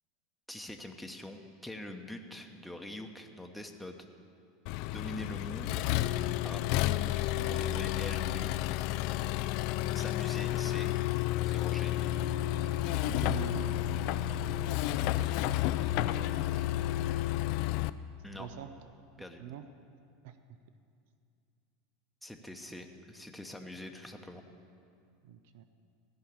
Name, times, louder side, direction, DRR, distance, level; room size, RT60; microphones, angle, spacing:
voice 1, 0.5-4.0 4.8-6.0 6.4-6.6 7.5-8.5 9.9-10.9 11.4-12.1 18.2-18.5 19.2-19.4 22.2-24.4, left 1 dB, 5° left, 3 dB, 1.0 m, -44 dB
Accelerating revving vroom, 4.7-17.9, left 14 dB, 55° left, 0.3 m, -31 dB
voice 2, 13.0-13.8 18.4-18.7 19.4-19.6 20.2-20.4 25.2-25.6, right 8 dB, 60° right, 10 dB, 0.6 m, -42 dB
15.5 x 5.7 x 8.6 m, 2.4 s
hypercardioid pair, 80°, 0 cm